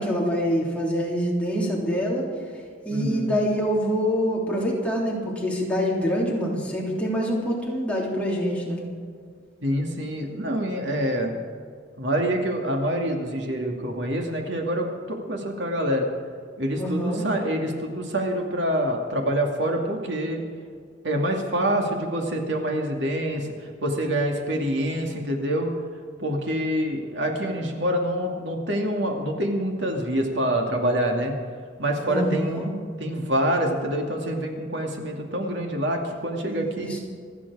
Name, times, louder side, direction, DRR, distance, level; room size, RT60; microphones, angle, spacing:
voice 1, 0.0-2.2 2.8-8.8 16.8-17.2 32.0-32.7 36.5-37.0, equal, 5° left, -4 dB, 3.3 m, -25 dB
voice 2, 2.9-3.3 9.6-11.3 12.0-16.1 16.6-20.4 21.0-23.5 23.8-25.7 26.2-31.3 31.8-32.7 33.0-36.9, equal, 70° right, 2 dB, 2.4 m, -26 dB
27.0 x 9.8 x 4.9 m, 2.1 s
head